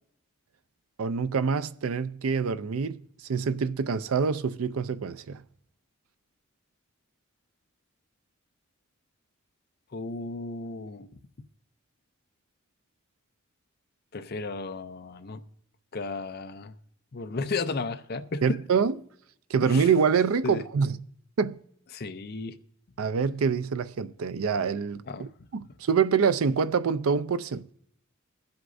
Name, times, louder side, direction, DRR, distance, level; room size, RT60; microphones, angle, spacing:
voice 1, 1.0-3.0 3.3-5.4 18.4-19.0 19.5-21.0 21.4-21.6 23.0-27.7, right 6 dB, 75° right, 0.5 m, -26 dB
voice 2, 9.9-11.1 14.1-15.4 15.9-16.7 17.1-18.6 19.6-19.9 20.4-20.6 21.9-22.6 25.1-25.3, left 3 dB, 45° left, 0.5 m, -34 dB
22.0 x 7.9 x 2.6 m
head